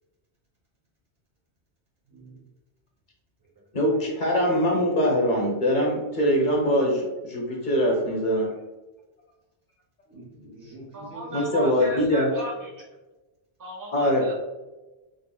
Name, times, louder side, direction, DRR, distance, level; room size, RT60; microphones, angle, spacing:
voice 1, 2.1-2.4 10.1-11.3 11.6-12.0, right 1 dB, 80° right, -7 dB, 2.1 m, -45 dB
voice 2, 3.7-8.5 11.3-12.3 13.9-14.3, equal, 50° left, 0 dB, 0.8 m, -23 dB
voice 3, 10.9-12.8 13.6-14.4, right 1 dB, 25° right, 0 dB, 0.5 m, -36 dB
3.5 x 3.5 x 2.2 m, 1.1 s
omnidirectional pair, 1.2 m